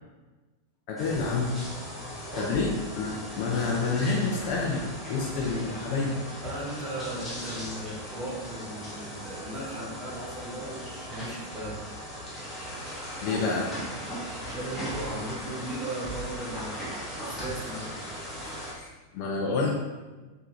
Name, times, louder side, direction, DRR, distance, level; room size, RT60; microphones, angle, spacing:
voice 1, 0.9-1.5 2.4-6.2 13.2-13.7 18.4-18.9 19.1-19.7, left 4 dB, 45° left, -2 dB, 0.4 m, -28 dB
sound 1, 1.0-18.7, equal, 5° left, 0.9 m, -38 dB
voice 2, 2.3-2.6 6.4-11.8 12.2-12.5 14.0-18.0, right 1 dB, 10° right, -8 dB, 1.2 m, -37 dB
2.6 x 2.2 x 3.3 m, 1.2 s
figure-of-eight pair, 90°, 0 cm